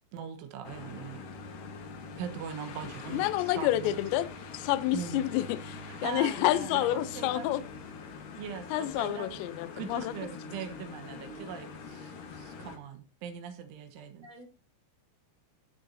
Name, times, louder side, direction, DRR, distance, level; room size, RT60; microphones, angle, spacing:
voice 1, 0.1-1.7 2.2-4.0 4.9-5.3 5.9-7.5 8.4-9.4 9.8-14.3, right 8 dB, 75° right, 3.4 m, -41 dB
sound 1, 0.6-12.8, left 4 dB, 65° left, 2.2 m, -44 dB
voice 2, 3.1-4.3 4.5-7.6 8.7-10.1, left 14 dB, 80° left, 2.7 m, -29 dB
voice 3, 11.0-11.5 14.2-14.5, right 2 dB, 25° right, 3.6 m, -48 dB
18.0 x 7.0 x 2.7 m
omnidirectional pair, 5.8 m